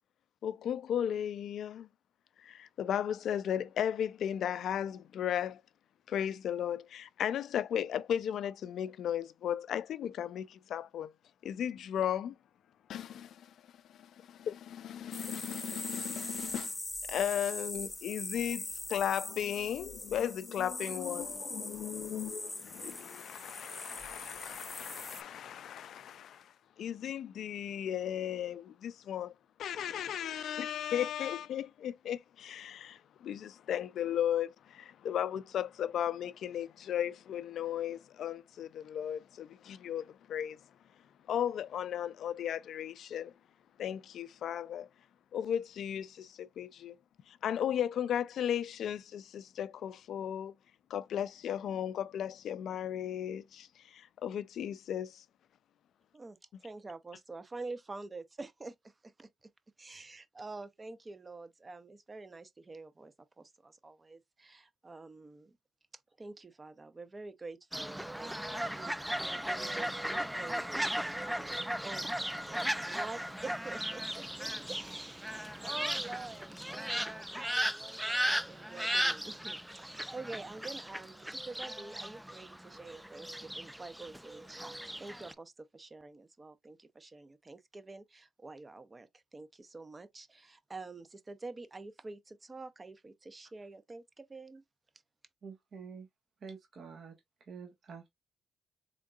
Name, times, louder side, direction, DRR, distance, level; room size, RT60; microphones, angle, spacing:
voice 1, 0.4-1.9 2.4-5.6 6.1-11.1 11.4-12.4 12.9-13.5 13.9-16.7 17.1-29.3 29.6-40.6 41.3-43.3 43.8-44.9 45.3-47.0 47.3-50.5 50.9-55.2, left 9 dB, 75° left, 0.4 m, -35 dB
sound 1, 15.1-25.2, left 2 dB, 20° left, 0.8 m, -42 dB
voice 2, 56.1-59.3 59.8-65.6 66.2-68.3 68.7-94.6, right 3 dB, 30° right, 0.7 m, -47 dB
Fowl, 67.7-85.3, equal, 5° right, 0.3 m, -36 dB
voice 3, 95.4-96.1 96.4-98.1, right 5 dB, 60° right, 1.3 m, -48 dB
3.6 x 3.6 x 2.4 m
supercardioid pair, 65°, 0 cm